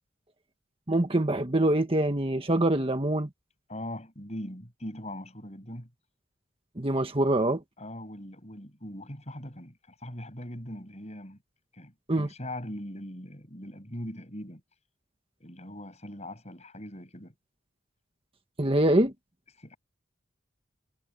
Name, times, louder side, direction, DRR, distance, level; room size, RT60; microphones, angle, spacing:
voice 1, 0.9-3.3 6.8-7.6 12.1-12.3 18.6-19.1, right 1 dB, 25° right, 1.5 m, -24 dB
voice 2, 3.7-5.9 7.8-11.4 11.7-14.6 15.4-17.4 19.6-19.8, left 1 dB, 35° left, 7.2 m, -41 dB
head